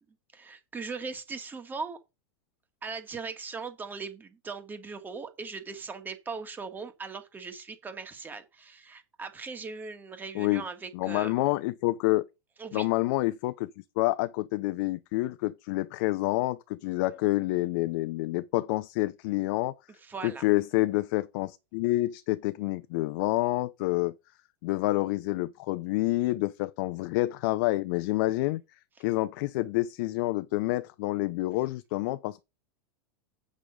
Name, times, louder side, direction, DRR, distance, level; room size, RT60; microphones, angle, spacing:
voice 1, 0.3-2.0 2.8-11.3 12.6-12.9 20.0-20.4, right 4 dB, 15° right, 1.7 m, -39 dB
voice 2, 10.9-12.3 12.7-13.7 14.0-19.8 20.2-24.1 24.6-28.6 29.0-32.4, left 19 dB, 55° left, 0.7 m, -28 dB
8.3 x 6.3 x 5.2 m
supercardioid pair, 150°, 13 cm